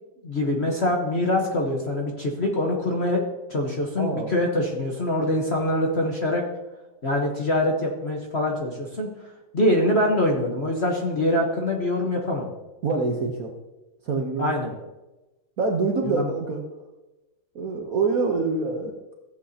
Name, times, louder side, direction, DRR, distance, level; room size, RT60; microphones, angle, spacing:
voice 1, 0.2-3.2 3.5-6.4 7.0-9.1 9.5-12.5 14.4-14.7 16.0-16.3, left 1 dB, 40° left, 0 dB, 1.1 m, -24 dB
voice 2, 4.0-4.4 12.8-13.5 14.0-14.5 15.6-16.6 17.5-18.9, right 4 dB, 55° right, 2 dB, 1.1 m, -25 dB
15.0 x 8.1 x 2.8 m, 1.1 s
omnidirectional pair, 2.3 m